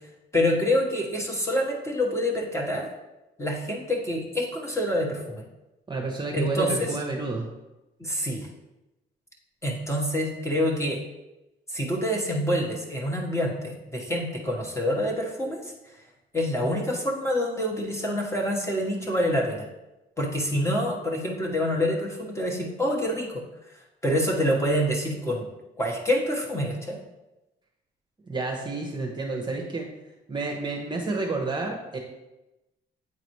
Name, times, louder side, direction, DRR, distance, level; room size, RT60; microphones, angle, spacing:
voice 1, 0.3-2.9 3.4-5.4 6.3-6.9 8.0-8.5 9.6-11.0 11.7-15.7 16.3-19.7 20.2-23.4 24.0-25.5 25.8-27.0, equal, 15° left, -2 dB, 1.3 m, -26 dB
voice 2, 5.9-7.5 28.3-29.9 30.3-32.0, right 3 dB, 25° right, 1 dB, 1.0 m, -30 dB
8.5 x 4.0 x 3.1 m, 0.99 s
cardioid pair, 90°, 20 cm